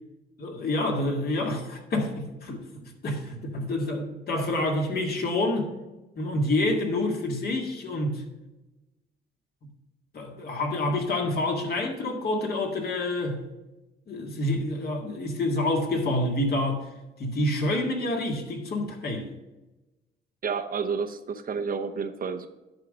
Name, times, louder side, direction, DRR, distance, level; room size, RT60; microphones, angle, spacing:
voice 1, 0.4-5.7 6.2-8.2 10.1-13.4 14.1-16.9 17.2-19.3, left 1 dB, 50° left, 2 dB, 1.9 m, -28 dB
voice 2, 20.4-22.5, right 5 dB, 45° right, 7 dB, 0.8 m, -30 dB
10.5 x 3.8 x 7.3 m, 1.1 s
cardioid pair, 90°, 20 cm